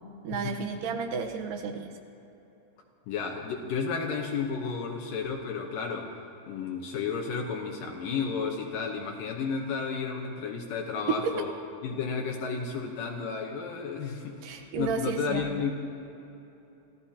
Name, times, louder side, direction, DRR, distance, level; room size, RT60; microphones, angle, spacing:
voice 1, 0.2-1.9 11.2-11.3 14.4-15.7, right 5 dB, 75° right, 5 dB, 2.6 m, -32 dB
voice 2, 3.1-6.1 6.5-11.5 11.8-15.7, left 5 dB, 75° left, 1 dB, 2.5 m, -32 dB
27.0 x 15.5 x 2.9 m, 3.0 s
omnidirectional pair, 4.1 m